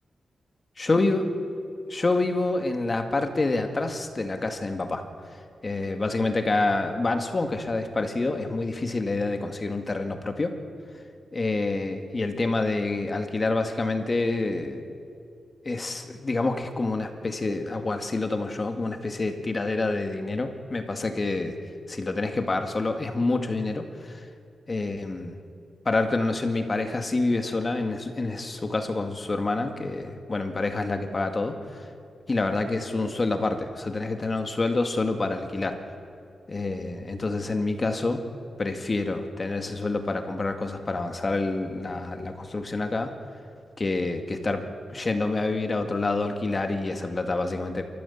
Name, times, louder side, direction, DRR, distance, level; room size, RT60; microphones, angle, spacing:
voice 1, 0.8-1.2 1.9-5.0 5.6-10.5 11.3-14.8 15.6-21.6 21.9-24.2 24.7-25.4 25.9-31.5 32.3-35.8 36.5-38.2 38.6-43.1 43.8-44.6 44.9-47.9, left 3 dB, 40° left, 5 dB, 2.2 m, -27 dB
28.0 x 14.0 x 7.4 m, 2.4 s
cardioid pair, 70°, 0 cm